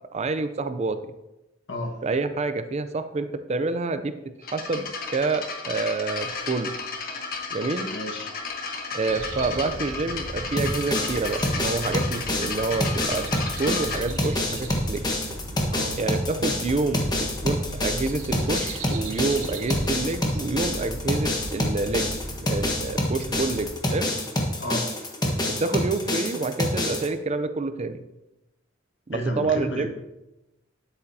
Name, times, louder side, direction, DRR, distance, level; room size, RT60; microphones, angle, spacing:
voice 1, 0.1-1.0 2.0-4.1 4.5-6.7 7.5-7.9 8.9-13.2 13.6-15.0 15.9-22.1 22.5-24.1 25.5-28.0 29.1-29.9, right 3 dB, 35° right, 10 dB, 0.5 m, -28 dB
voice 2, 1.7-2.0 7.8-8.3 15.7-15.9 24.6-24.9 29.1-29.9, left 1 dB, 65° left, 3 dB, 1.4 m, -32 dB
sound 1, 4.4-14.0, left 4 dB, 50° left, 1.2 m, -33 dB
sound 2, 9.1-23.7, right 1 dB, 70° right, 0.8 m, -37 dB
sound 3, 10.6-27.1, left 1 dB, 20° left, 1.3 m, -27 dB
9.9 x 8.5 x 2.7 m, 0.95 s
head